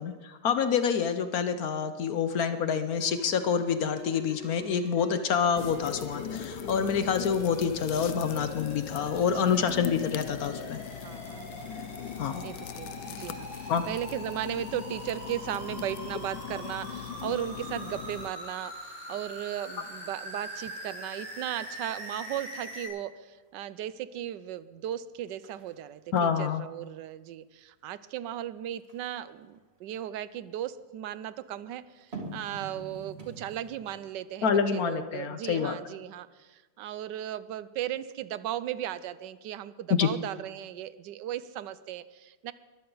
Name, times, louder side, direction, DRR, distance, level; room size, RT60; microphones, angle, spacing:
voice 1, 0.0-10.8 12.2-12.4 13.7-13.8 26.1-26.6 34.4-35.8 39.9-40.1, left 7 dB, 60° left, 10 dB, 1.2 m, -27 dB
sound 1, 2.9-22.9, right 1 dB, 5° right, 4.9 m, -43 dB
sound 2, 5.6-18.3, left 11 dB, 80° left, 1.3 m, -40 dB
voice 2, 9.3-9.8 11.0-11.7 12.4-42.5, right 11 dB, 80° right, 15 dB, 1.3 m, -36 dB
sound 3, 21.2-21.4 21.8-23.5 23.9-24.3 24.8-24.9 25.3-27.2 28.7-30.6 31.9-34.2 34.5-34.6, right 3 dB, 35° right, 2.1 m, -47 dB
22.0 x 15.0 x 4.0 m, 1.2 s
omnidirectional pair, 1.9 m